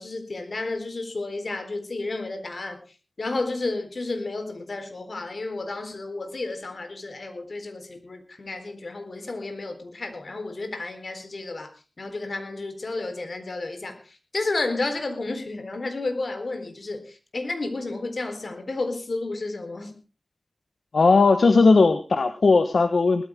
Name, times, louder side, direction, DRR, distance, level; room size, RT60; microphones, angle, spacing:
voice 1, 0.0-2.8 3.2-11.7 12.0-20.0, left 2 dB, 65° left, 7 dB, 3.9 m, -32 dB
voice 2, 20.9-23.2, left 4 dB, 85° left, 8 dB, 1.3 m, -17 dB
19.5 x 14.0 x 3.6 m, 0.33 s
wide cardioid pair, 60°, 0 cm